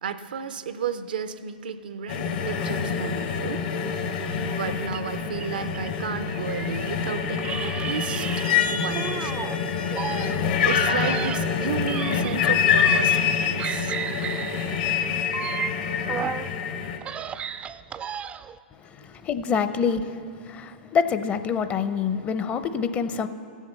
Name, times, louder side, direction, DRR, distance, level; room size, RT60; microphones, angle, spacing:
voice 1, 0.0-3.6 4.4-8.4 8.7-9.4 10.6-13.9, right 6 dB, 80° right, 12 dB, 0.6 m, -33 dB
sound 1, 2.1-17.0, left 7 dB, 65° left, 1.1 m, -26 dB
sound 2, 4.9-7.0 7.4-9.6 9.9-13.3 13.6-16.5 16.9-18.6, right 8 dB, 25° right, 0.3 m, -34 dB
voice 2, 19.0-20.2 20.5-23.3, left 6 dB, 30° left, 11 dB, 0.6 m, -26 dB
15.5 x 7.3 x 6.8 m, 2.3 s
hypercardioid pair, 105°, 5 cm